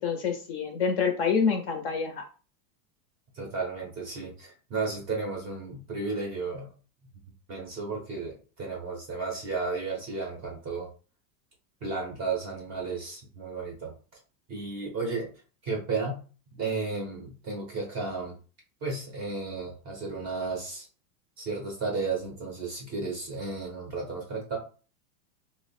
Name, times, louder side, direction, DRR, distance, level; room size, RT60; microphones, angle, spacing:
voice 1, 0.0-2.2, left 6 dB, 40° left, 5 dB, 0.5 m, -27 dB
voice 2, 3.3-6.7 7.5-10.9 11.8-13.9 14.5-15.3 15.6-16.2 16.5-18.4 18.8-20.9 21.4-24.6, right 4 dB, 20° right, 0 dB, 0.5 m, -33 dB
2.9 x 2.0 x 4.0 m, 0.37 s
supercardioid pair, 165°, 47 cm